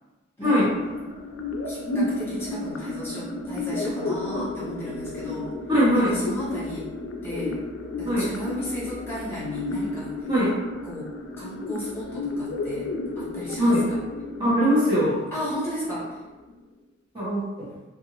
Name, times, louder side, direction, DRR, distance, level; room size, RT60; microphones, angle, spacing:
voice 1, 0.4-0.7 1.6-5.5 5.9-6.9 7.2-7.6 8.0-10.1 10.8-11.1 11.4-12.9 13.1-14.0 15.3-16.1, equal, 15° left, -9 dB, 1.3 m, -34 dB
sound 1, 0.6-16.5, left 2 dB, 85° left, 0.4 m, -32 dB
voice 2, 5.7-6.2 8.0-8.3 10.3-10.5 13.6-13.9 14.4-15.2 17.1-17.7, equal, 25° right, -10 dB, 1.0 m, -21 dB
2.6 x 2.5 x 3.0 m, 1.1 s
head